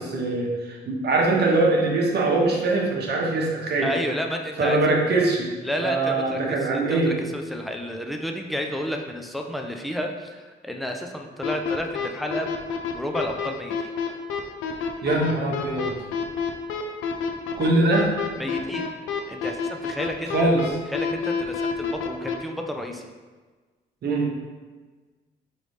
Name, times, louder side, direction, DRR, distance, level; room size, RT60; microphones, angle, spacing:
voice 1, 0.0-3.9 4.6-5.5 5.8-7.2 15.0-15.9 17.6-18.1 20.3-20.6 24.0-24.3, right 2 dB, 55° right, -1 dB, 0.9 m, -22 dB
voice 2, 3.8-4.8 5.6-12.5 12.9-13.7 18.4-18.9 19.3-20.5 20.9-23.1, equal, ahead, 2 dB, 0.4 m, -31 dB
sound 1, 11.4-22.3, left 6 dB, 90° left, 0.5 m, -27 dB
3.9 x 3.2 x 3.2 m, 1.4 s
cardioid pair, 90°, 20 cm